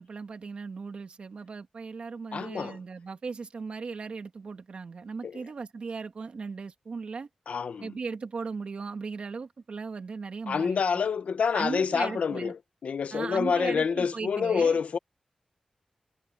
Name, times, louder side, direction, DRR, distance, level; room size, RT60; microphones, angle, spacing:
voice 1, 0.0-7.3 7.8-10.8 11.5-12.5 13.1-14.8, right 4 dB, 55° right, 2.2 m, -37 dB
voice 2, 2.3-2.8 5.2-5.3 7.5-7.9 10.5-12.5 12.8-15.0, left 6 dB, 75° left, 0.9 m, -27 dB
wide cardioid pair, 170°, 2 cm